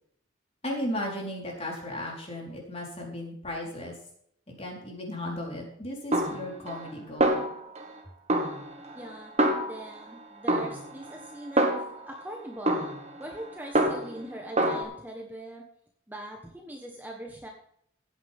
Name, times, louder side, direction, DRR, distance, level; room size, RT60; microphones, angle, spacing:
voice 1, 0.6-4.0 4.5-7.4, left 1 dB, 30° left, -2 dB, 4.3 m, -35 dB
Snare drum, 6.1-6.9 7.2-8.0 8.3-10.1 10.5-12.1 12.7-14.3 14.6-14.8, right 1 dB, 35° right, 1.5 m, -27 dB
voice 2, 8.9-9.3 9.6-11.6 12.0-12.9 13.2-15.6 16.1-17.5, right 1 dB, 10° right, 1 dB, 1.4 m, -41 dB
16.0 x 9.7 x 3.7 m, 0.69 s
head